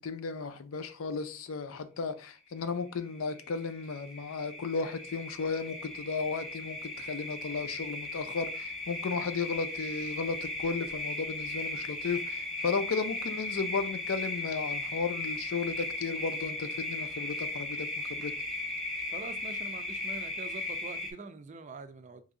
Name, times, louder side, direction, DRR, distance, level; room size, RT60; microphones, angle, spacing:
voice 1, 0.0-18.3, left 4 dB, 85° left, 0.5 m, -34 dB
sound 1, 3.1-21.1, left 2 dB, ahead, 0.7 m, -37 dB
voice 2, 19.1-22.2, right 4 dB, 35° right, 0.4 m, -44 dB
3.0 x 2.6 x 3.6 m
head